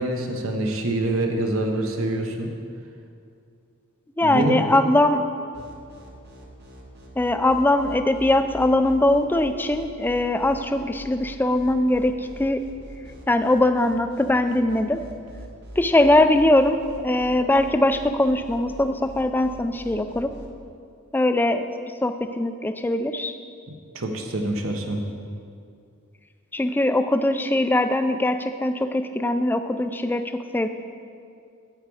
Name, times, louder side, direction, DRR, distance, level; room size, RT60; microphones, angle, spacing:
voice 1, 0.0-2.5 4.2-4.6 23.9-25.0, right 1 dB, 70° right, 3 dB, 1.1 m, -25 dB
voice 2, 4.2-5.2 7.2-12.6 13.3-15.0 15.8-16.8 17.0-20.3 21.1-21.6 22.0-23.3 26.5-30.7, left 1 dB, 10° left, 8 dB, 0.3 m, -21 dB
sound 1, 5.5-20.5, equal, 50° right, 1.2 m, -43 dB
9.1 x 8.5 x 4.8 m, 2.4 s
head